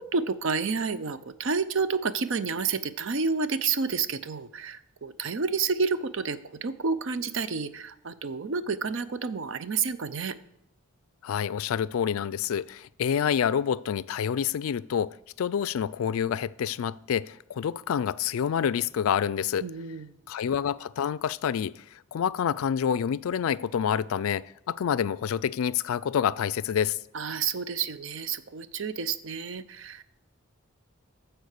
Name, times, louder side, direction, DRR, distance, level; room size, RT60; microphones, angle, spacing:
voice 1, 0.0-10.4 19.6-20.1 27.1-30.0, right 5 dB, 60° right, 0.5 m, -30 dB
voice 2, 11.2-19.7 20.3-21.8 22.1-27.0, left 8 dB, 70° left, 0.3 m, -28 dB
13.5 x 4.6 x 6.5 m
head